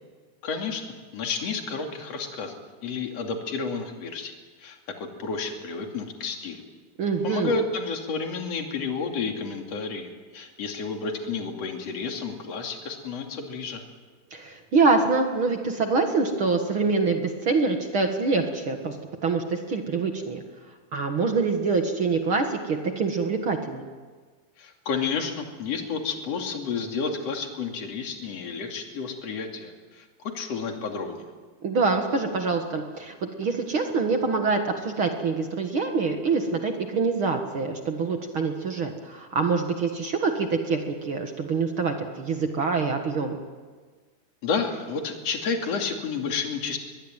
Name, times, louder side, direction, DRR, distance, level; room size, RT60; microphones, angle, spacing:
voice 1, 0.4-0.8 1.1-4.3 4.6-4.8 5.2-6.6 7.2-13.8 24.6-31.2 44.4-46.8, left 5 dB, 40° left, 3 dB, 3.2 m, -31 dB
voice 2, 7.0-7.5 14.3-18.9 19.2-20.4 20.9-23.9 31.6-43.4, right 4 dB, 55° right, 4 dB, 1.5 m, -25 dB
22.0 x 22.0 x 9.1 m, 1.4 s
omnidirectional pair, 4.8 m